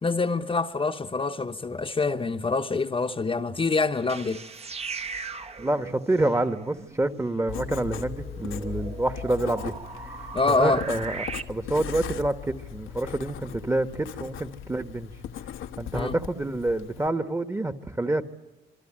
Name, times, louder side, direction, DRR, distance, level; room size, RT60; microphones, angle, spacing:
voice 1, 0.0-4.4 10.3-10.8 15.9-16.1, left 3 dB, 25° left, 1.1 m, -26 dB
sound 1, 3.9-11.4, right 4 dB, 30° right, 1.2 m, -39 dB
voice 2, 5.6-9.8 10.5-15.1 15.8-18.2, right 1 dB, 15° right, 1.5 m, -27 dB
Writing, 7.5-17.1, left 9 dB, 80° left, 1.3 m, -38 dB
27.0 x 23.0 x 8.9 m
cardioid pair, 90°, 20 cm